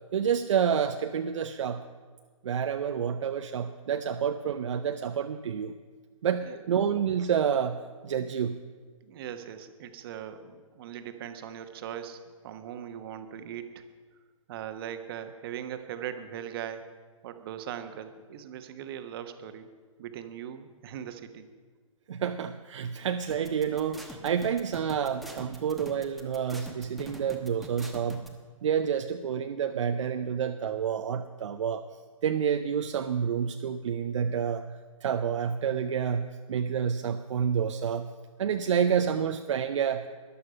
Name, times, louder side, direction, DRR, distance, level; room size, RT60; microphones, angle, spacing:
voice 1, 0.1-1.8 2.4-5.8 6.2-8.6 22.1-28.3 28.6-31.8 32.2-34.7 35.0-38.1 38.4-40.1, right 8 dB, 65° right, 7 dB, 0.6 m, -29 dB
voice 2, 9.0-13.8 14.5-16.9 17.2-19.7 20.0-21.5, right 9 dB, 45° right, 8 dB, 1.2 m, -40 dB
sound 1, 23.3-28.3, right 1 dB, ahead, 1.2 m, -44 dB
13.5 x 11.0 x 5.4 m, 1.5 s
figure-of-eight pair, 125°, 17 cm